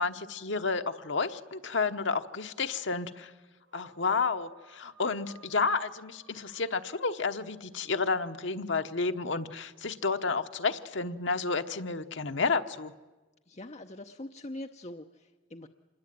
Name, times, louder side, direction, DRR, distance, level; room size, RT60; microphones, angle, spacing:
voice 1, 0.0-3.3 3.7-12.9, left 4 dB, 65° left, 8 dB, 1.1 m, -31 dB
sound 1, 3.6-7.7, right 2 dB, 75° right, 5.3 m, -60 dB
voice 2, 13.5-15.7, left 1 dB, 35° left, 6 dB, 0.8 m, -43 dB
26.5 x 20.5 x 9.3 m, 1.2 s
head